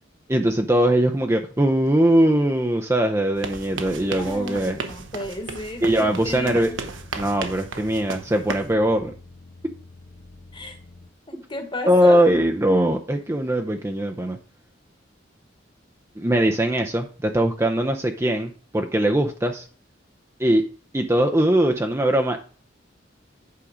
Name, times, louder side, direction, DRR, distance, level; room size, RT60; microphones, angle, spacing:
voice 1, 0.3-4.8 5.8-6.7 7.2-9.1 11.9-14.4 16.2-19.7 20.4-20.6 20.9-22.5, right 1 dB, 15° right, 3 dB, 0.6 m, -21 dB
sound 1, 3.3-8.7, right 4 dB, 75° right, 1.0 m, -35 dB
voice 2, 4.2-6.8 10.5-10.8 11.3-12.2, left 1 dB, 25° left, 6 dB, 1.4 m, -33 dB
sound 2, 5.7-11.1, left 2 dB, 85° left, 1.1 m, -47 dB
8.5 x 5.3 x 5.0 m, 0.41 s
head